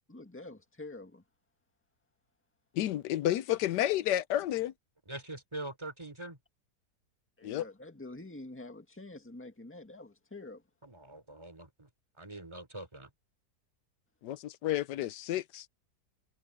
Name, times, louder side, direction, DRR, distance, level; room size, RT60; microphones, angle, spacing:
voice 1, 0.1-1.2 7.4-10.6, left 2 dB, 5° left, 1.8 m, -47 dB
voice 2, 2.7-4.7 7.4-7.7 14.2-15.7, left 13 dB, 75° left, 1.2 m, -31 dB
voice 3, 5.1-6.4 10.8-11.9 12.2-13.1, right 2 dB, 15° right, 3.5 m, -43 dB
omnidirectional pair, 1.9 m